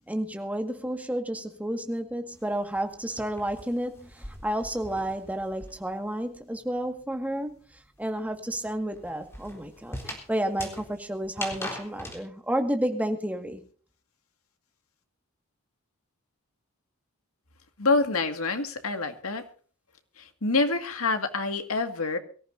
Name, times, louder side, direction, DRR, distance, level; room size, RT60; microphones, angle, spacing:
voice 1, 0.1-7.6 8.0-13.6, right 1 dB, 5° right, 5 dB, 1.8 m, -31 dB
sound 1, 2.3-6.1 6.3-12.2, left 1 dB, 10° left, 4.0 m, -42 dB
voice 2, 17.8-19.4 20.2-22.2, left 3 dB, 70° left, 7 dB, 2.0 m, -27 dB
23.5 x 14.5 x 2.7 m, 0.43 s
head